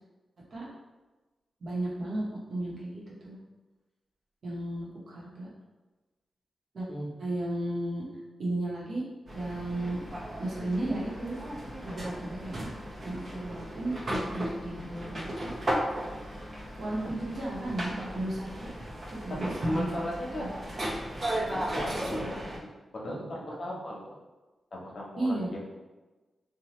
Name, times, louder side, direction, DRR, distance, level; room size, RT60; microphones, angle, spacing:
voice 1, 1.6-2.2 2.5-3.3 4.4-5.5 6.7-6.9 7.2-8.1 8.4-9.0 9.3-10.0 10.4-11.4 11.8-12.8 13.0-15.5 16.8-18.7 19.1-20.1 20.3-20.5 25.2-25.5, right 1 dB, 70° right, -5 dB, 0.9 m, -34 dB
sound 1, 9.3-22.6, equal, 50° right, 0.6 m, -36 dB
voice 2, 19.4-20.6 21.5-22.4 22.9-24.2 24.7-25.6, equal, 60° left, -3 dB, 0.8 m, -36 dB
2.8 x 2.2 x 3.0 m, 1.2 s
cardioid pair, 50°, 0 cm